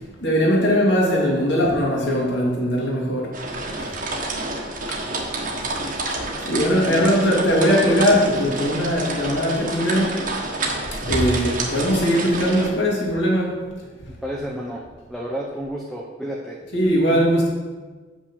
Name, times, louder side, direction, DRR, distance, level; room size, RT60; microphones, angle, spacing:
voice 1, 0.2-3.5 3.8-4.0 4.9-5.0 6.1-6.2 6.4-10.2 11.0-13.6 16.7-17.5, equal, 70° left, -2 dB, 2.3 m, -20 dB
sound 1, 3.3-12.7, right 2 dB, 45° right, 1.4 m, -29 dB
voice 2, 6.6-7.1 14.2-16.6, equal, ahead, -2 dB, 0.8 m, -31 dB
6.7 x 5.8 x 7.1 m, 1.4 s
head